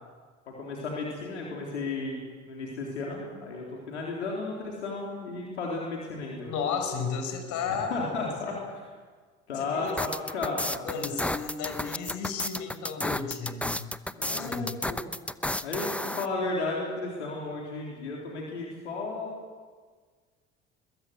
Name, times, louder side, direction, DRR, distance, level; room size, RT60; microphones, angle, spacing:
voice 1, 0.6-6.5 7.7-8.5 9.5-11.0 14.1-15.0 15.6-19.3, left 3 dB, 90° left, -2 dB, 3.8 m, -34 dB
voice 2, 6.4-8.6 9.5-10.0 10.8-13.9 14.3-14.7, left 5 dB, 60° left, 6 dB, 5.4 m, -34 dB
sound 1, 9.9-16.3, left 1 dB, 5° left, 0.9 m, -32 dB
23.5 x 22.0 x 8.1 m, 1.5 s
hypercardioid pair, 60°, 33 cm